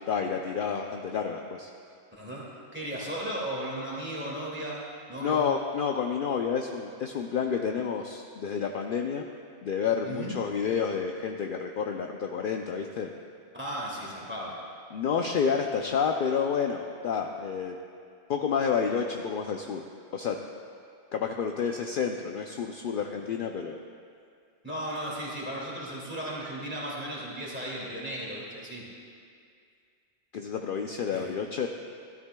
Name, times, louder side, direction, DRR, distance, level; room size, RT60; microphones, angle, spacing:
voice 1, 0.0-1.7 5.2-9.2 9.6-13.1 14.9-17.8 18.3-19.9 20.1-20.4 21.1-23.8 30.3-31.7, left 6 dB, 60° left, 3 dB, 0.6 m, -29 dB
voice 2, 2.1-2.4 2.7-5.5 10.0-10.4 13.5-14.6 24.6-28.9 31.1-31.3, right 1 dB, 10° right, -6 dB, 2.1 m, -35 dB
13.5 x 13.0 x 2.2 m, 2.3 s
omnidirectional pair, 1.1 m